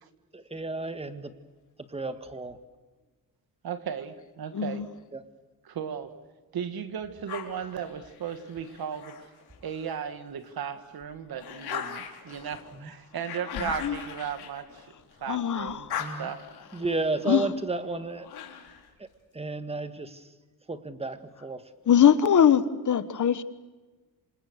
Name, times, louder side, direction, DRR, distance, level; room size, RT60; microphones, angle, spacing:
voice 1, 0.3-1.3 1.9-2.6 5.1-5.2 12.7-12.9 16.0-16.3 16.7-18.3 19.0-19.1 19.3-20.3 20.7-21.7, right 3 dB, 15° right, 1.7 m, -33 dB
voice 2, 3.6-4.8 5.7-6.2 6.5-9.3 9.6-14.9 15.2-15.9 16.2-16.4, right 8 dB, 70° right, 2.2 m, -36 dB
voice 3, 4.5-4.9 13.5-14.0 15.3-15.9 17.2-17.6 21.9-23.4, left 9 dB, 50° left, 1.3 m, -22 dB
sound 1, 7.3-10.0 10.5-15.3 15.6-18.9, left 8 dB, 90° left, 3.9 m, -41 dB
27.5 x 26.0 x 6.6 m
wide cardioid pair, 140°, 37 cm